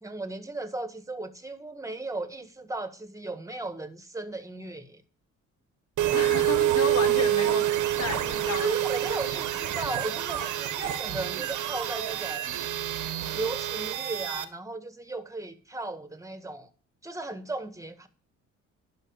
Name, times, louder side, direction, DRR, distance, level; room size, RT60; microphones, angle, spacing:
voice 1, 0.0-5.0 8.6-12.5 13.3-16.7 17.0-18.1, right 2 dB, 10° right, 1.7 m, -36 dB
sound 1, 6.0-14.4, right 12 dB, 85° right, 1.5 m, -27 dB
voice 2, 6.1-8.7, left 4 dB, 60° left, 4.1 m, -32 dB
11.0 x 6.0 x 8.8 m
cardioid pair, 90°, 30 cm